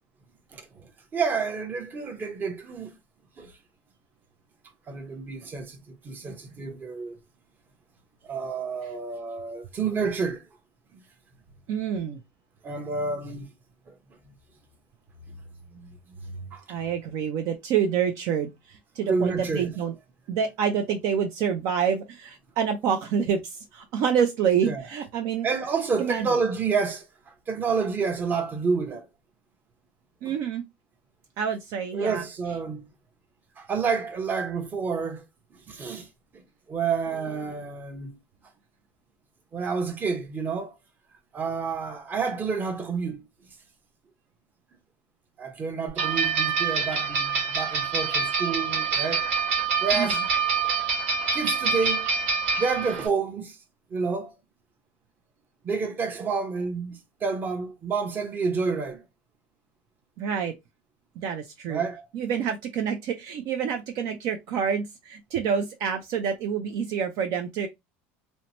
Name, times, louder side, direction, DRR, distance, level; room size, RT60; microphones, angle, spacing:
voice 1, 0.5-2.9 3.4-3.5 4.9-7.2 8.2-10.4 10.9-11.0 12.6-13.5 13.9-14.0 14.2-14.4 15.7-16.0 16.2-16.6 19.1-19.7 24.6-24.8 25.4-27.1 27.5-29.1 30.2-30.4 31.9-32.8 33.6-35.2 35.5-36.1 36.7-38.2 39.5-40.7 41.3-43.2 45.4-49.3 49.8-50.2 50.6-50.8 51.3-52.1 52.6-53.6 53.9-54.3 55.6-59.1 61.7-62.0, right 5 dB, 30° right, 0.8 m, -29 dB
voice 2, 11.7-12.2 16.7-19.9 20.3-25.5 26.0-26.3 30.2-30.6 31.4-32.2 49.9-50.1 60.2-60.5 61.2-61.8 62.1-67.7, right 7 dB, 60° right, 0.5 m, -27 dB
sound 1, 46.0-53.1, right 5 dB, 85° right, 1.4 m, -26 dB
2.8 x 2.1 x 2.8 m
supercardioid pair, 105°, 6 cm